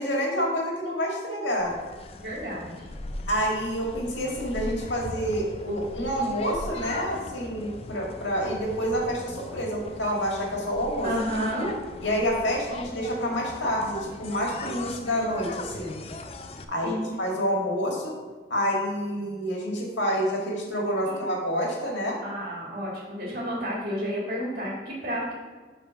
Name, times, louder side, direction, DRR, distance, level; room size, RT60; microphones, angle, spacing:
voice 1, 0.0-1.7 3.3-11.1 12.0-16.0 16.7-18.2 18.5-22.2, equal, 85° left, -1 dB, 1.8 m, -28 dB
sound 1, 1.6-16.6, left 2 dB, 35° left, 0.4 m, -40 dB
voice 2, 2.2-2.9 11.0-11.7 16.8-17.1 21.1-21.2 22.2-25.4, equal, 55° right, -4 dB, 1.7 m, -31 dB
6.9 x 3.8 x 5.8 m, 1.4 s
head